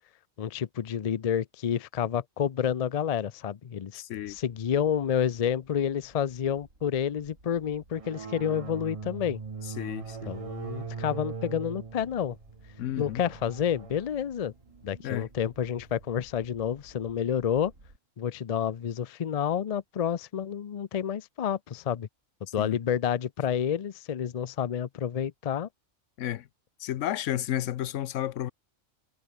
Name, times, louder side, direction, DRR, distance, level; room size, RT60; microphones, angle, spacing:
voice 1, 0.4-4.0 4.3-9.4 10.3-12.4 13.0-14.5 14.8-17.7 18.2-22.1 22.5-25.7, left 8 dB, 45° left, 0.5 m, -29 dB
voice 2, 4.0-4.4 9.8-10.3 12.8-13.2 15.0-15.3 22.6-22.8 26.2-26.5 26.8-28.5, left 12 dB, 75° left, 0.9 m, -32 dB
sound 1, 4.3-18.0, right 2 dB, 75° right, 6.2 m, -57 dB
sound 2, 7.9-16.1, right 5 dB, 30° right, 0.8 m, -41 dB
omnidirectional pair, 1.3 m